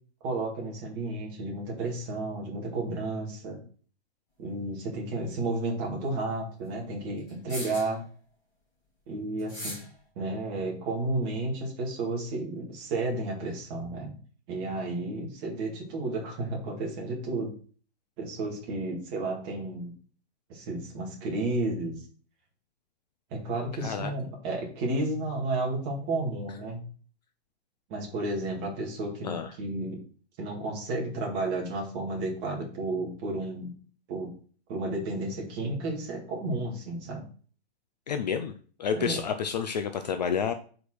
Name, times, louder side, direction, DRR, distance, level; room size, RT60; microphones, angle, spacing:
voice 1, 0.2-3.6 4.4-8.0 9.1-9.8 10.2-14.2 14.5-17.5 18.2-19.9 20.5-21.9 23.3-26.8 27.9-30.0 30.4-33.7 34.1-34.3 34.7-37.2 38.9-39.2, right 2 dB, 25° right, -1 dB, 2.1 m, -32 dB
sound 1, 5.3-5.4 7.3-8.0 9.4-9.9, equal, 10° left, 2.6 m, -39 dB
voice 2, 23.8-24.1 29.2-29.5 38.1-38.5 38.8-40.5, left 7 dB, 40° left, 9 dB, 0.5 m, -29 dB
5.1 x 4.9 x 6.2 m, 0.43 s
hypercardioid pair, 170°, 33 cm